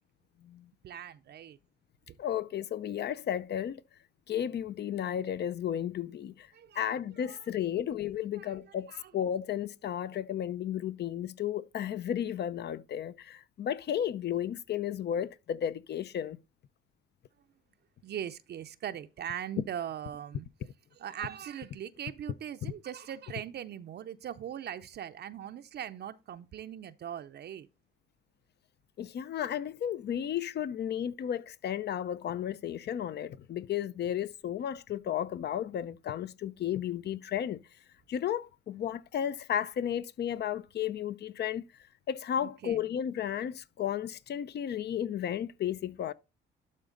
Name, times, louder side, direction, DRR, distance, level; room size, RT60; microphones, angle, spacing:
voice 1, 0.8-1.6 6.5-6.9 7.2-7.8 8.3-9.1 18.0-20.5 21.0-27.7 42.4-42.9, right 9 dB, 55° right, 0.5 m, -41 dB
voice 2, 2.2-3.8 4.3-6.5 6.7-16.4 22.6-22.7 29.0-37.6 38.1-41.6 42.1-46.1, left 10 dB, 55° left, 0.6 m, -33 dB
12.0 x 4.2 x 3.8 m
cardioid pair, 90°, 20 cm